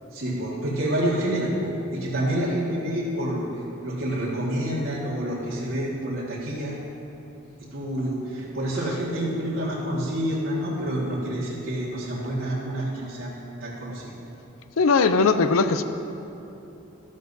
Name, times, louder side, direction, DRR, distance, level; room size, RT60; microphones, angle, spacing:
voice 1, 0.1-6.8 7.7-13.3 13.6-14.1, right 1 dB, 75° right, -8 dB, 1.8 m, -28 dB
voice 2, 14.8-15.8, left 4 dB, 80° left, 10 dB, 0.5 m, -19 dB
12.5 x 11.5 x 2.7 m, 2.9 s
head